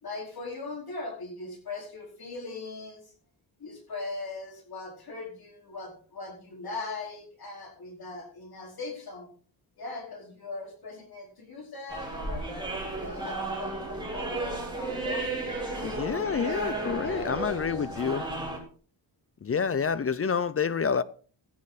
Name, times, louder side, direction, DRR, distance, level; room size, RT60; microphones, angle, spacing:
voice 1, 0.0-3.1 3.6-9.3 9.8-12.5 12.9-18.3, left 3 dB, 55° left, 4.4 m, -40 dB
sound 1, 11.9-18.6, right 2 dB, 10° right, 4.1 m, -34 dB
voice 2, 15.8-18.2 19.4-21.0, left 6 dB, 30° left, 0.5 m, -28 dB
15.0 x 9.8 x 4.1 m
wide cardioid pair, 130°, 45 cm